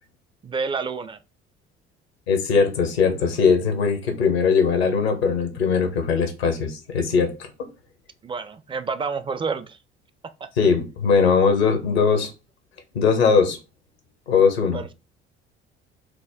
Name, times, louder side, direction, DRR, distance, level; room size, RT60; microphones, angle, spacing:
voice 1, 0.4-1.2 8.2-9.8 14.7-14.9, right 5 dB, 15° right, 0.4 m, -29 dB
voice 2, 2.3-7.3 10.6-12.3 12.9-13.6 14.3-14.8, left 5 dB, 75° left, 0.9 m, -20 dB
4.7 x 2.1 x 3.5 m
figure-of-eight pair, 55°, 31 cm